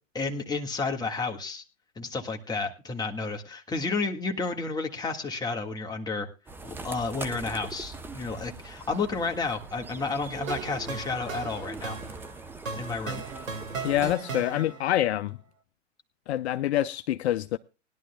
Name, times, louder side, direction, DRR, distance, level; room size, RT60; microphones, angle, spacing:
voice 1, 0.1-1.6 1.9-6.3 6.6-12.0 12.7-13.2, left 4 dB, 10° left, 1.6 m, -31 dB
sound 1, 6.5-14.2, right 3 dB, 5° right, 0.6 m, -42 dB
sound 2, 10.3-15.0, right 5 dB, 85° right, 2.0 m, -37 dB
voice 2, 13.8-15.4 16.3-17.6, left 12 dB, 55° left, 0.6 m, -26 dB
20.5 x 11.0 x 2.2 m
hypercardioid pair, 120°, 39 cm